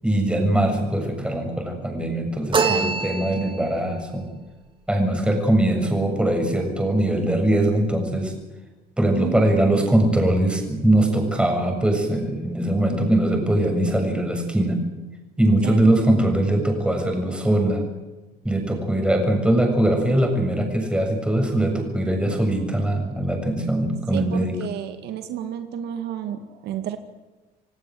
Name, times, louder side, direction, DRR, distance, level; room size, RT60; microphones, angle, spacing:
voice 1, 0.0-4.3 4.9-8.3 9.0-14.8 15.4-17.8 18.4-24.6, right 1 dB, 5° right, 3 dB, 7.2 m, -21 dB
sound 1, 2.5-3.8, right 4 dB, 30° right, 3.5 m, -24 dB
voice 2, 2.5-3.0 9.2-9.6 15.6-15.9 24.1-27.0, right 9 dB, 75° right, 8 dB, 2.1 m, -31 dB
28.0 x 17.0 x 7.9 m, 1.2 s
cardioid pair, 110°, 17 cm